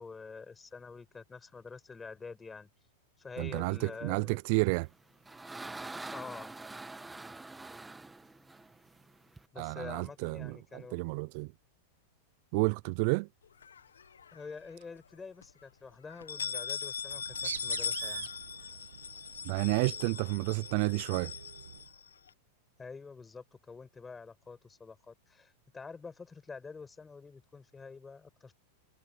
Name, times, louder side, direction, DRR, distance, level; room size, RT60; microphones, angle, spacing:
voice 1, 0.0-2.7 3.2-4.4 6.1-6.5 9.5-11.0 14.3-18.3 22.8-28.5, left 4 dB, 15° left, 5.3 m, -47 dB
voice 2, 3.4-4.9 9.6-11.5 12.5-13.3 19.4-21.3, right 30 dB, 55° right, 0.4 m, -31 dB
sound 1, 4.8-9.5, right 2 dB, 10° right, 1.7 m, -45 dB
sound 2, 13.6-14.5 14.9-15.0 15.4-15.5 16.1-22.3, left 6 dB, 85° left, 1.2 m, -40 dB
Bird, 17.0-21.9, right 9 dB, 80° right, 1.5 m, -45 dB
hypercardioid pair, 105°, 0 cm